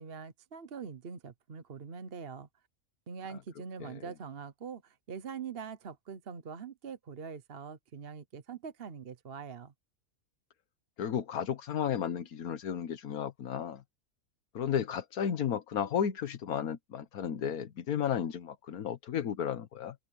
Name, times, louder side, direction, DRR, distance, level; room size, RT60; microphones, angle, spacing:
voice 1, 0.0-2.5 3.1-9.7, right 6 dB, 45° right, 1.1 m, -43 dB
voice 2, 11.0-13.8 14.5-19.9, left 8 dB, 85° left, 1.5 m, -33 dB
omnidirectional pair, 1.5 m